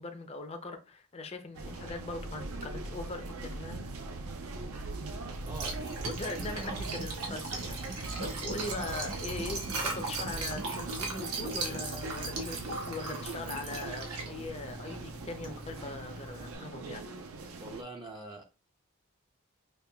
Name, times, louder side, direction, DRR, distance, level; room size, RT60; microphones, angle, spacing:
voice 1, 0.0-3.8 6.0-17.0, left 3 dB, 30° left, 0.5 m, -41 dB
sound 1, 1.5-17.8, right 3 dB, 70° right, 0.5 m, -41 dB
Liquid, 5.3-16.5, right 3 dB, 85° right, 1.0 m, -38 dB
voice 2, 5.4-6.0 6.4-6.8 17.6-18.4, right 2 dB, 20° right, 0.5 m, -44 dB
5.2 x 2.3 x 2.2 m
head